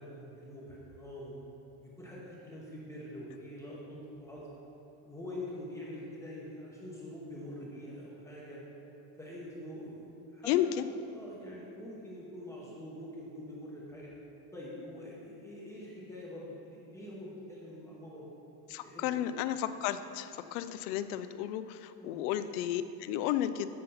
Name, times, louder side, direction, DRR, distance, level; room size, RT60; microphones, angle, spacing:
voice 1, 0.0-1.3 1.8-4.4 5.0-8.6 9.2-10.7 11.1-14.1 14.5-18.3 18.8-19.3 22.0-22.2, left 1 dB, 5° left, -6 dB, 0.8 m, -45 dB
voice 2, 10.5-10.8 18.7-23.7, left 11 dB, 85° left, 12 dB, 0.5 m, -33 dB
7.7 x 5.5 x 5.5 m, 2.8 s
cardioid pair, 170°, 43 cm